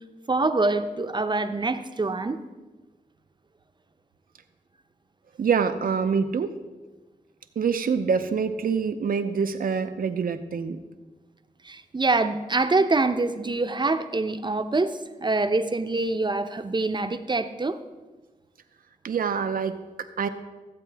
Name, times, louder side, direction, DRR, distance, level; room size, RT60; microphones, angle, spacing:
voice 1, 0.3-2.4 11.6-17.8, right 3 dB, 30° right, 9 dB, 0.6 m, -25 dB
voice 2, 5.4-6.5 7.6-10.8 19.0-20.3, right 6 dB, 90° right, 9 dB, 0.6 m, -26 dB
14.5 x 8.3 x 3.4 m, 1.2 s
cardioid pair, 60°, 14 cm